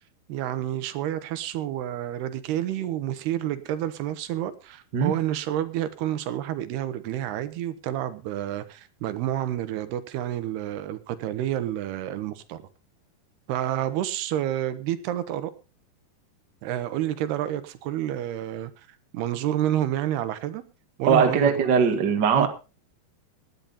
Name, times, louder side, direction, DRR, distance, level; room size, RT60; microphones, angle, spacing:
voice 1, 0.3-12.6 13.5-15.5 16.6-18.7 19.1-20.6 21.0-21.5 22.3-22.5, right 12 dB, 80° right, 3.0 m, -29 dB
voice 2, 21.1-22.5, right 6 dB, 40° right, 1.6 m, -20 dB
18.0 x 10.5 x 4.1 m
omnidirectional pair, 4.7 m